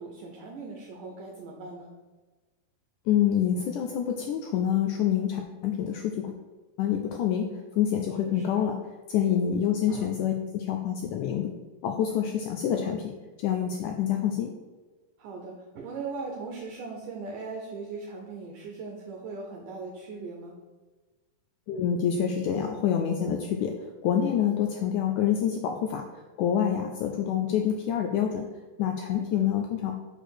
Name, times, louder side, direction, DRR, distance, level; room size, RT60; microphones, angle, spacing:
voice 1, 0.0-1.9 8.2-8.7 9.9-10.1 15.2-20.6 29.1-29.5, right 4 dB, 75° right, 0 dB, 2.2 m, -39 dB
voice 2, 3.1-6.3 6.8-8.8 9.1-11.5 11.8-13.1 13.4-14.5 21.7-23.7 24.0-28.5 28.8-29.9, left 9 dB, 90° left, 3 dB, 1.7 m, -27 dB
6.6 x 4.9 x 6.3 m, 1.3 s
omnidirectional pair, 4.2 m